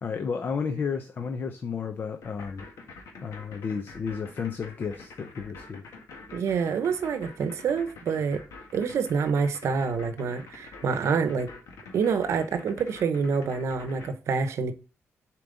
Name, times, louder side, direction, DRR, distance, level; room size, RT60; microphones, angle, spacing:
voice 1, 0.0-2.7 3.2-5.8, left 6 dB, 40° left, 0.5 m, -32 dB
sound 1, 2.2-14.1, left 4 dB, 80° left, 1.7 m, -46 dB
voice 2, 6.3-8.4 8.7-11.5 11.9-14.7, right 5 dB, 65° right, 0.9 m, -27 dB
7.1 x 4.5 x 3.9 m
wide cardioid pair, 155°, 5 cm